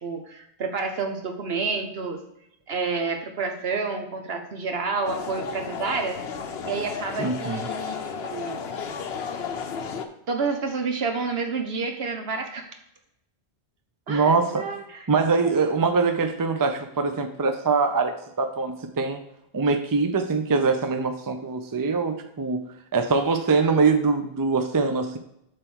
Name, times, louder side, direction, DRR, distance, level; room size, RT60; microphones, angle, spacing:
voice 1, 0.0-2.2 2.7-6.2 6.6-8.6 10.3-12.7 14.1-15.0 15.4-15.5, right 4 dB, 70° right, 4 dB, 1.2 m, -29 dB
sound 1, 5.0-10.0, left 6 dB, 75° left, 0.9 m, -33 dB
voice 2, 7.2-7.7 14.1-14.7 15.1-19.2 19.5-22.6 22.9-25.2, right 4 dB, 25° right, 7 dB, 0.5 m, -23 dB
7.5 x 3.4 x 6.2 m, 0.79 s
omnidirectional pair, 1.1 m